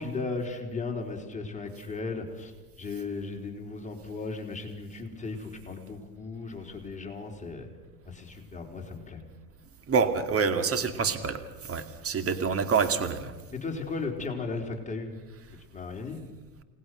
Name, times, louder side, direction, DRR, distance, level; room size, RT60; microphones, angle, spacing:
voice 1, 0.0-2.5 2.8-7.7 8.0-9.2 13.5-15.1 15.7-16.2, left 3 dB, 15° left, 1 dB, 4.6 m, -36 dB
voice 2, 9.9-13.3, right 5 dB, 30° right, 8 dB, 2.4 m, -27 dB
30.0 x 20.0 x 6.5 m, 1.2 s
hypercardioid pair, 85°, 47 cm